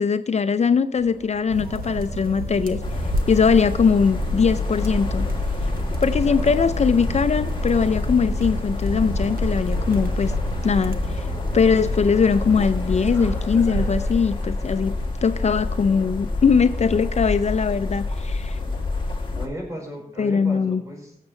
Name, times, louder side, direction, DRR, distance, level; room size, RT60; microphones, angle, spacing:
voice 1, 0.0-2.8 3.3-5.3 6.0-10.3 10.6-11.3 11.5-14.9 15.2-18.6 20.2-20.8, left 5 dB, 50° left, 11 dB, 0.5 m, -21 dB
sound 1, 1.0-19.0, left 2 dB, 15° left, 2.6 m, -44 dB
sound 2, 1.5-14.2, right 2 dB, 90° right, 1.2 m, -31 dB
sound 3, 2.8-19.5, left 3 dB, 35° left, 1.9 m, -27 dB
voice 2, 6.3-6.7 19.3-21.2, equal, 20° right, 0 dB, 4.7 m, -36 dB
18.0 x 7.4 x 3.2 m, 0.68 s
wide cardioid pair, 90°, 15 cm